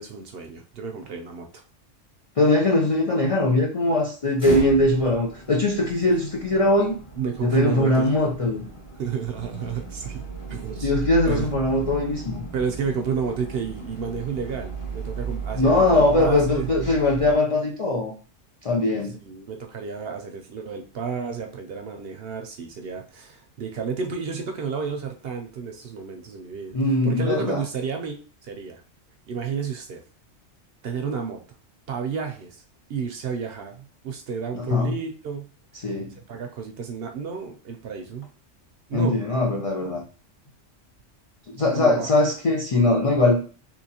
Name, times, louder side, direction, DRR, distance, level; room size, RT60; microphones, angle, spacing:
voice 1, 0.0-1.6 4.5-4.7 7.2-8.1 9.0-10.2 10.5-10.9 11.3-11.5 12.5-16.7 19.2-26.8 27.0-28.8 29.3-30.0 30.8-31.4 31.9-32.6 32.9-35.5 36.2-38.3 38.9-39.2 41.7-42.1, right 6 dB, 60° right, 4 dB, 0.7 m, -31 dB
voice 2, 2.4-7.0 7.4-8.6 10.8-12.4 15.5-18.1 18.6-19.2 26.7-27.6 34.5-34.9 35.8-36.1 38.9-40.0 41.5-43.4, left 2 dB, 60° left, -1 dB, 0.3 m, -21 dB
sound 1, 4.3-17.3, right 4 dB, 40° left, 1.8 m, -36 dB
3.7 x 2.8 x 2.8 m, 0.38 s
omnidirectional pair, 1.3 m